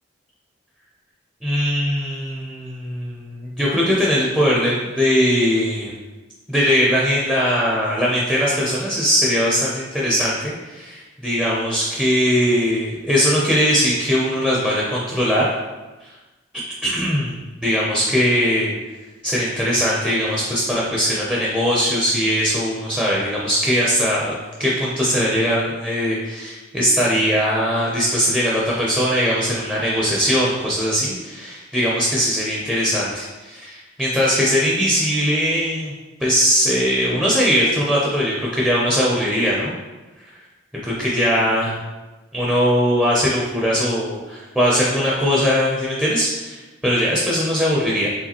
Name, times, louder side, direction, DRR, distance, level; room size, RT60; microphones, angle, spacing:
voice 1, 1.4-5.9 6.5-15.5 16.5-17.4 17.6-18.7 19.2-24.3 24.6-35.9 36.2-39.7 40.8-41.8 42.3-48.1, equal, 5° right, -5 dB, 0.5 m, -20 dB
4.8 x 3.6 x 2.9 m, 1.1 s
head